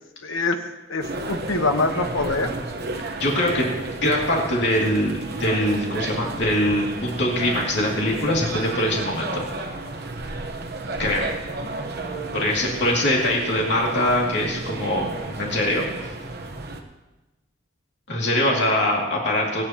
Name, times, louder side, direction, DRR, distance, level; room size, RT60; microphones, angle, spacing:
voice 1, 0.2-0.6 0.9-2.5, left 3 dB, 70° left, 6 dB, 1.2 m, -24 dB
sound 1, 1.0-16.8, right 2 dB, 50° right, 1.1 m, -32 dB
voice 2, 3.2-3.7 4.0-9.4 11.0-11.3 12.3-15.8 18.1-19.6, left 1 dB, 55° left, -2 dB, 2.5 m, -23 dB
24.5 x 9.0 x 2.9 m, 1.0 s
head